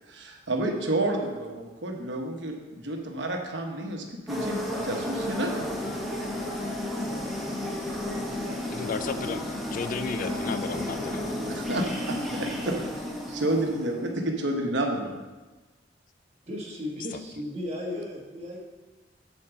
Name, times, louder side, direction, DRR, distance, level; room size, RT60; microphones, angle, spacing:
voice 1, 0.1-5.8 11.5-12.7 13.3-15.2, right 1 dB, 75° right, 2 dB, 1.1 m, -30 dB
sound 1, 4.3-14.1, left 1 dB, ahead, 1.0 m, -32 dB
voice 2, 8.6-9.4 9.7-11.3, left 5 dB, 45° left, 11 dB, 0.4 m, -33 dB
voice 3, 16.4-18.6, left 1 dB, 35° right, -2 dB, 1.6 m, -35 dB
7.3 x 4.5 x 6.9 m, 1.2 s
head